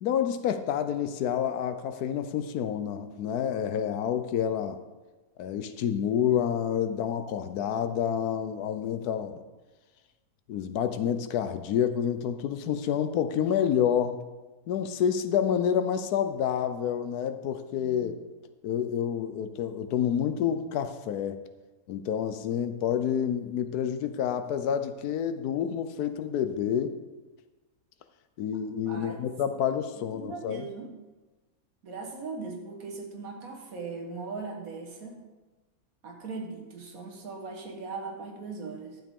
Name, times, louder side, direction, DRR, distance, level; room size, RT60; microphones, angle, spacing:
voice 1, 0.0-4.8 5.4-9.4 10.5-14.2 14.7-18.1 18.6-21.4 21.9-26.9 28.4-30.7, left 9 dB, 80° left, 9 dB, 1.2 m, -28 dB
voice 2, 17.7-18.1 28.9-29.2 29.9-30.9 31.8-35.2 36.0-39.0, right 4 dB, 65° right, 2 dB, 1.7 m, -39 dB
11.5 x 7.5 x 3.7 m, 1.2 s
omnidirectional pair, 1.6 m